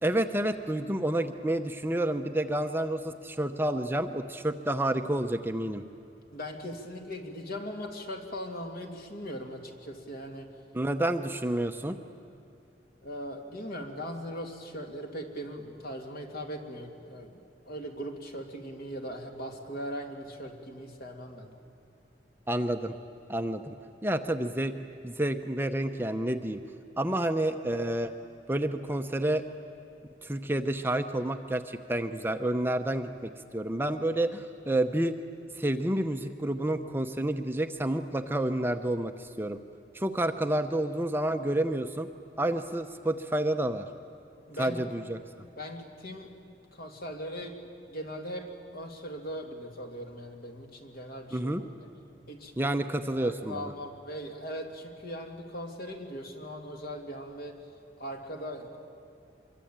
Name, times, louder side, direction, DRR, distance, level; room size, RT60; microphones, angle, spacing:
voice 1, 0.0-5.8 10.7-12.0 22.5-23.0 23.3-23.7 24.0-24.7 25.0-26.6 27.0-28.1 28.5-29.4 30.2-35.1 35.6-39.6 39.9-42.1 42.4-43.9 44.6-45.2 51.3-51.6 52.6-53.7, right 1 dB, 10° right, 7 dB, 0.7 m, -29 dB
voice 2, 6.3-10.5 13.0-17.4 17.7-21.5 44.5-44.9 45.4-46.3 46.7-51.5 51.8-51.9 52.3-52.5 53.2-57.6 58.0-58.8, equal, 55° left, 3 dB, 2.6 m, -39 dB
25.0 x 23.5 x 8.8 m, 2.6 s
head